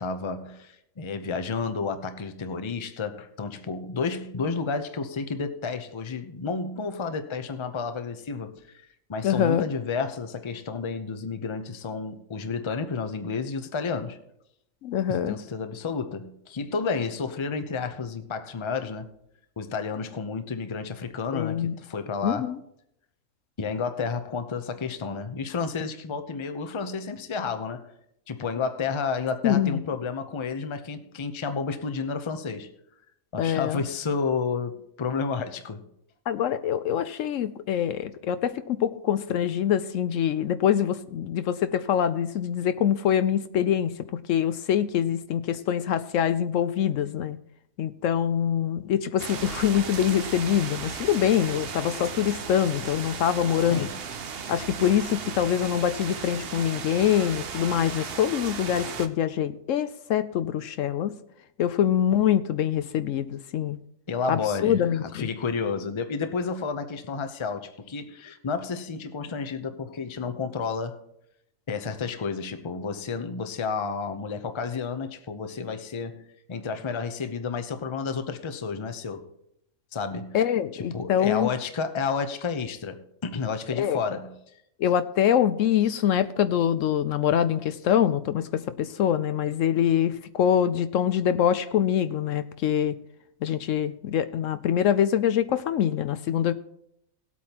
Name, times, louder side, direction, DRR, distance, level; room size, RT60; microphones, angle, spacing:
voice 1, 0.0-8.8 9.1-14.2 15.1-19.1 19.6-22.5 23.6-27.9 28.3-32.7 33.3-35.8 53.7-54.0 64.1-71.0 71.7-76.2 76.5-79.3 79.9-80.4 80.7-84.4, left 5 dB, 30° left, 0.6 m, -31 dB
voice 2, 9.2-9.6 14.8-15.4 21.3-21.7 22.2-22.6 29.4-29.8 33.4-33.8 36.3-43.9 44.3-47.4 47.8-53.9 54.5-61.1 61.6-63.8 64.3-65.3 80.3-81.5 83.8-84.0 84.8-92.9 93.4-96.5, left 9 dB, 70° left, 0.9 m, -24 dB
sound 1, 49.2-59.1, right 6 dB, 50° right, 0.9 m, -36 dB
18.5 x 8.4 x 2.9 m
omnidirectional pair, 1.4 m